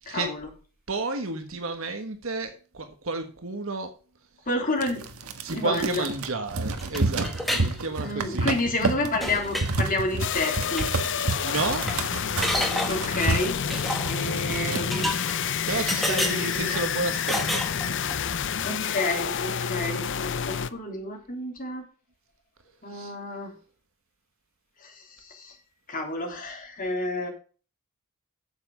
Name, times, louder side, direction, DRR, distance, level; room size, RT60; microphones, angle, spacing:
voice 1, 0.1-0.5 4.5-5.1 5.5-6.1 8.0-10.9 12.9-15.0 16.1-16.7 18.6-21.8 22.8-23.5 24.8-25.6 25.9-27.3, left 2 dB, 40° left, 1 dB, 3.4 m, -30 dB
voice 2, 0.9-3.9 5.4-8.5 11.4-11.9 15.6-17.6 22.9-23.1, right 3 dB, 65° right, 7 dB, 1.4 m, -31 dB
sound 1, 4.8-15.1 15.5-15.6 15.8-16.5 16.9-17.3, right 3 dB, 85° right, 1.4 m, -30 dB
sound 2, 6.8-7.7 8.0-8.5 8.8-8.9 9.2-9.7 10.7-10.9 11.2-11.3 11.5-12.0 12.4-13.1 13.7-14.2 14.9-15.6 15.9-16.8 17.3-18.3, left 1 dB, ahead, 1.4 m, -30 dB
sound 3, 10.2-20.7, left 7 dB, 60° left, 0.7 m, -29 dB
8.7 x 7.3 x 5.5 m, 0.38 s
head